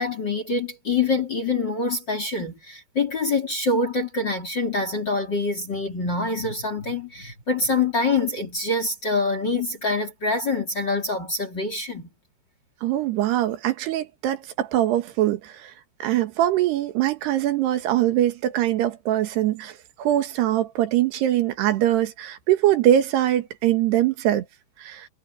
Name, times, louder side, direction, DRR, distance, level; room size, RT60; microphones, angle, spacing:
voice 1, 0.0-12.1, left 3 dB, 30° left, 3.6 m, -25 dB
voice 2, 12.8-15.7 16.0-24.5 24.8-25.1, right 12 dB, 80° right, 3.6 m, -22 dB
omnidirectional pair, 4.7 m